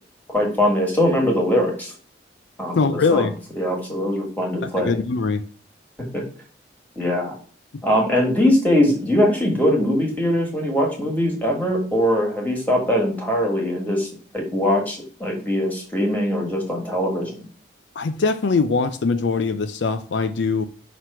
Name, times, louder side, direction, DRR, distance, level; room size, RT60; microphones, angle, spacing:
voice 1, 0.3-1.9 2.6-3.3 3.6-5.0 6.1-6.2 7.0-7.3 7.8-14.1 14.3-17.3, left 1 dB, 10° left, 1.7 m, -21 dB
voice 2, 2.8-3.3 4.8-5.4 18.0-20.6, left 4 dB, 75° left, 0.5 m, -21 dB
5.9 x 3.1 x 5.5 m
head